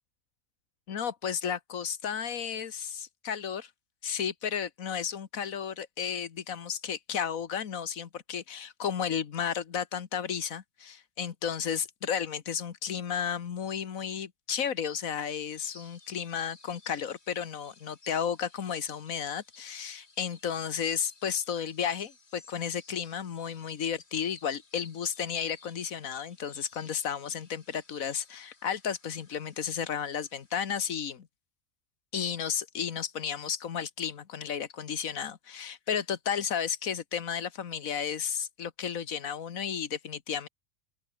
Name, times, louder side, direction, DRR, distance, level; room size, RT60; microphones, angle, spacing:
voice 1, 0.9-3.7 4.0-31.3 32.1-40.5, left 7 dB, 90° left, 1.7 m, -33 dB
sound 1, 15.1-31.1, left 3 dB, 50° left, 3.0 m, -57 dB
open air
omnidirectional pair, 1.4 m